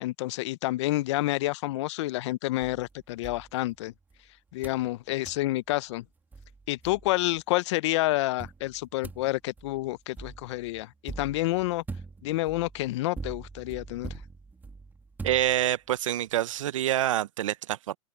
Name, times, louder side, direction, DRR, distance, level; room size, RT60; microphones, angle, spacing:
voice 1, 0.0-3.9 4.5-6.0 6.7-11.8 12.2-14.2, left 18 dB, 60° left, 0.7 m, -29 dB
sound 1, 2.6-4.2 4.6-4.9 5.2-5.5 6.0-6.1 6.3-7.4 8.4-16.0, right 4 dB, 10° right, 2.3 m, -43 dB
voice 2, 15.2-18.0, right 12 dB, 80° right, 0.8 m, -26 dB
open air
hypercardioid pair, 130°, 16 cm